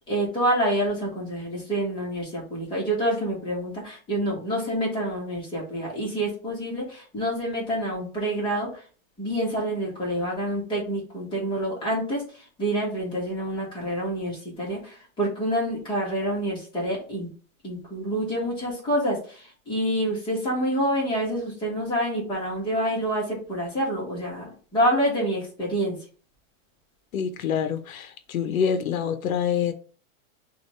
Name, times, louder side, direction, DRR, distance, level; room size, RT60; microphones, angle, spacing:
voice 1, 0.1-8.8 9.2-17.3 17.6-26.0, right 1 dB, 10° left, 1.6 m, -27 dB
voice 2, 27.1-29.7, left 7 dB, 85° left, 0.8 m, -26 dB
6.4 x 2.7 x 3.1 m
supercardioid pair, 165°, 41 cm